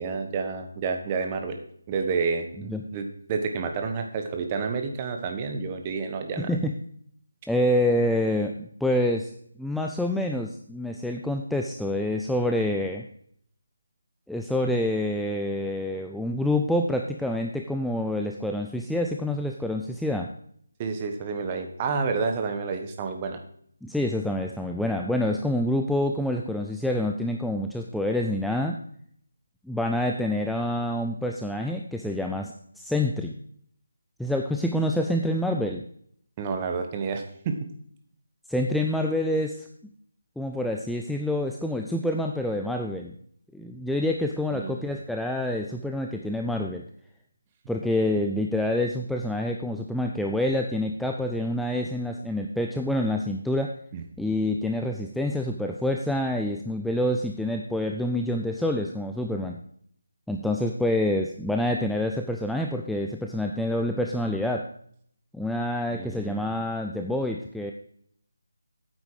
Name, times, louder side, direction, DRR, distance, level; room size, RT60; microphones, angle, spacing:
voice 1, 0.0-1.6 1.9-6.5 20.8-23.4 36.4-37.7 44.5-44.8 53.9-54.0 65.9-66.4, right 5 dB, 25° right, 5 dB, 1.3 m, -29 dB
voice 2, 6.4-6.7 7.5-9.3 9.6-13.1 14.3-20.3 23.8-28.8 29.7-33.3 34.2-35.8 38.5-39.7 40.4-43.1 43.5-46.9 47.7-53.7 54.2-59.6 60.3-64.7 65.3-67.7, left 1 dB, ahead, 2 dB, 0.4 m, -27 dB
9.0 x 8.2 x 4.9 m, 0.64 s
figure-of-eight pair, 160°, 0 cm